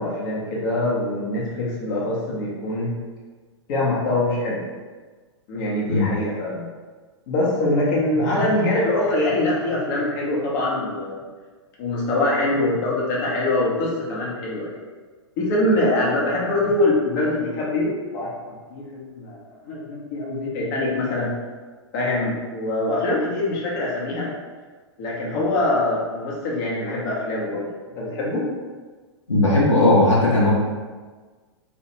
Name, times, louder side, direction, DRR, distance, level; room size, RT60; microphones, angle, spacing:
voice 1, 0.0-2.9 3.7-4.6 5.5-6.6 7.3-11.3 11.8-14.9 15.4-21.3 21.9-24.3 25.0-27.7 28.0-28.4, left 1 dB, 45° left, -5 dB, 0.8 m, -24 dB
voice 2, 29.3-30.5, left 2 dB, 90° left, -6 dB, 0.7 m, -17 dB
2.3 x 2.1 x 2.9 m, 1.4 s
figure-of-eight pair, 105°, 15 cm